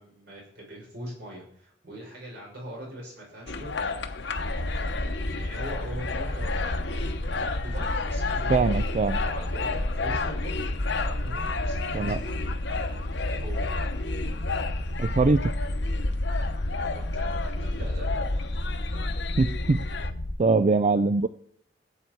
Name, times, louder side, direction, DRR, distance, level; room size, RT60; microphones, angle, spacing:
voice 1, 0.0-8.9 9.2-10.5 11.0-12.5 13.3-13.7 16.8-18.2, equal, 65° right, -2 dB, 5.9 m, -42 dB
sound 1, 3.5-20.1, left 4 dB, 70° left, 0.9 m, -33 dB
sound 2, 4.4-20.3, left 1 dB, 90° left, 1.3 m, -31 dB
voice 2, 8.5-9.2 11.9-12.2 15.0-15.5 19.4-19.9 20.4-21.3, right 3 dB, 40° right, 12 dB, 0.4 m, -22 dB
16.5 x 8.3 x 4.6 m, 0.67 s
head